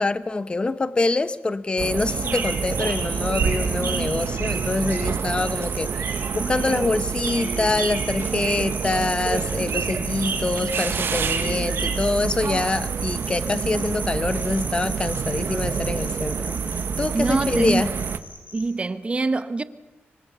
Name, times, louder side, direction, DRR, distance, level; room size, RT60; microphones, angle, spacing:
voice 1, 0.0-16.6 17.0-17.9, left 3 dB, 25° left, 0.9 m, -25 dB
sound 1, 1.8-18.2, right 6 dB, 65° right, 1.2 m, -27 dB
sound 2, 1.9-5.0 5.4-18.6, left 3 dB, 55° left, 7.3 m, -42 dB
sound 3, 2.1-5.5 5.8-6.8 7.1-9.1 9.4-12.0, right 5 dB, 80° right, 5.0 m, -33 dB
voice 2, 17.1-17.8 18.5-19.6, right 3 dB, 30° right, 1.0 m, -24 dB
25.5 x 24.0 x 6.9 m
wide cardioid pair, 125°, 4 cm